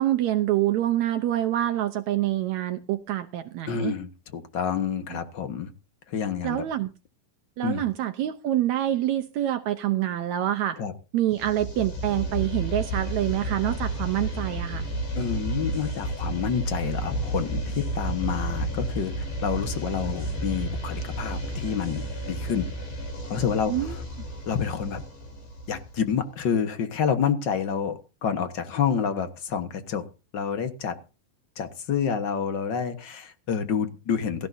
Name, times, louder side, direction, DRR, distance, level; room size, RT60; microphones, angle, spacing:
voice 1, 0.0-3.9 5.1-5.2 6.4-6.9 7.6-10.8 11.1-14.8 23.7-24.0, right 13 dB, 70° right, 8 dB, 1.9 m, -26 dB
voice 2, 3.7-5.7 6.1-6.6 7.6-7.8 10.8-10.9 15.2-22.7 23.3-24.0 24.5-25.0 25.7-30.0 30.3-31.0 31.6-34.5, left 7 dB, 50° left, 8 dB, 1.4 m, -28 dB
sound 1, 11.3-26.2, right 1 dB, 65° left, 5.2 m, -32 dB
17.5 x 15.5 x 2.8 m, 0.33 s
omnidirectional pair, 3.8 m